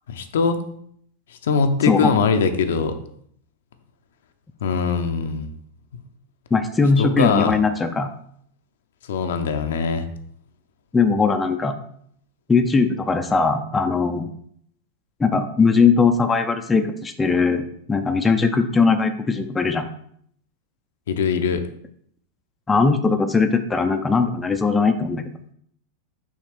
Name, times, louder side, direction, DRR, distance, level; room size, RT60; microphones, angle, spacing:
voice 1, 0.1-0.6 1.4-3.0 4.6-5.5 7.0-7.6 9.1-10.1 21.1-21.6, left 5 dB, 60° left, 8 dB, 0.6 m, -21 dB
voice 2, 6.5-8.1 10.9-11.8 12.5-14.3 15.2-19.9 22.7-25.3, left 4 dB, 15° left, 6 dB, 0.5 m, -19 dB
6.1 x 3.2 x 5.9 m, 0.66 s
figure-of-eight pair, 90°, 0 cm